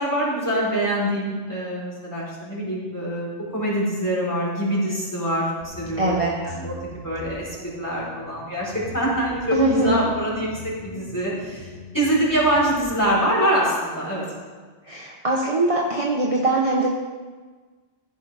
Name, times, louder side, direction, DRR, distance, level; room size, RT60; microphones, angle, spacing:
voice 1, 0.0-3.3 3.5-6.8 7.0-7.4 7.8-11.7 11.9-14.2, right 1 dB, 15° left, -6 dB, 4.2 m, -24 dB
sound 1, 5.6-13.0, left 1 dB, 45° left, 2.9 m, -41 dB
voice 2, 6.0-6.3 9.5-10.1 14.9-16.9, right 2 dB, 30° right, -2 dB, 1.1 m, -22 dB
15.0 x 9.9 x 3.5 m, 1.4 s
omnidirectional pair, 1.2 m